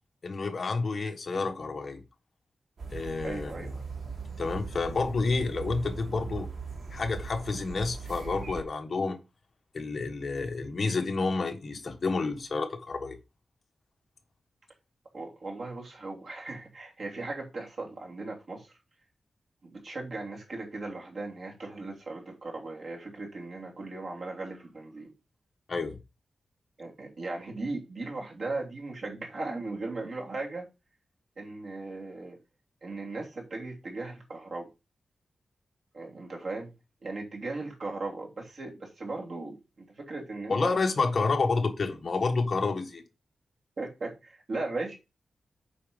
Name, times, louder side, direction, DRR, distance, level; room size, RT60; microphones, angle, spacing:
voice 1, 0.2-2.0 2.9-3.7 4.4-6.5 6.9-9.2 9.7-13.2 25.7-26.0 40.5-43.0, left 4 dB, 40° left, 1.3 m, -29 dB
sound 1, 2.8-8.6, right 5 dB, 80° right, 2.5 m, -39 dB
voice 2, 3.2-3.7 15.1-18.7 19.6-25.1 26.8-30.6 31.4-32.4 32.8-34.7 35.9-36.7 37.0-40.8 41.2-41.3 43.8-45.0, right 3 dB, 55° right, 2.9 m, -37 dB
8.5 x 5.1 x 5.3 m
wide cardioid pair, 165°, 0 cm